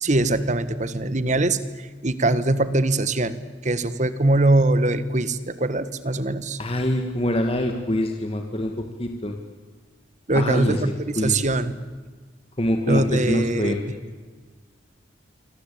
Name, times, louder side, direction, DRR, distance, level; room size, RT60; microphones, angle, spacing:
voice 1, 0.0-3.4 3.6-6.6 10.3-11.7 12.9-13.9, right 2 dB, 40° right, 13 dB, 1.5 m, -22 dB
voice 2, 6.6-8.7 9.0-9.3 10.3-10.8 11.2-11.4 12.6-13.8, left 1 dB, 30° left, 4 dB, 2.1 m, -24 dB
28.0 x 24.5 x 8.7 m, 1.4 s
head